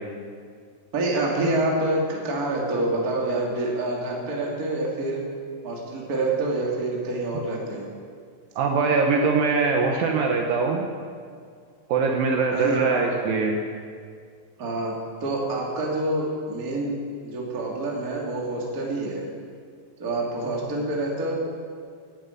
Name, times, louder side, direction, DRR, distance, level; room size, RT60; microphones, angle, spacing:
voice 1, 0.9-5.2 5.6-7.9 12.5-13.0 14.6-14.9 15.2-16.9 17.2-19.2 20.0-21.3, right 2 dB, 30° right, -2 dB, 1.7 m, -27 dB
voice 2, 8.6-10.9 11.9-13.6, right 4 dB, 80° right, 2 dB, 2.0 m, -22 dB
11.0 x 10.0 x 9.4 m, 2.1 s
omnidirectional pair, 5.4 m